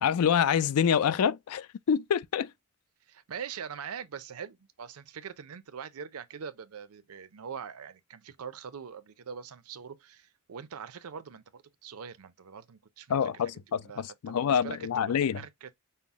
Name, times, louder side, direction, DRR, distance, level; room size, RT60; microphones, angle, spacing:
voice 1, 0.0-2.5 13.1-15.4, left 8 dB, 80° left, 0.4 m, -26 dB
voice 2, 3.1-13.4 13.8-14.8 15.3-15.7, right 7 dB, 75° right, 0.5 m, -43 dB
5.6 x 2.0 x 3.5 m
head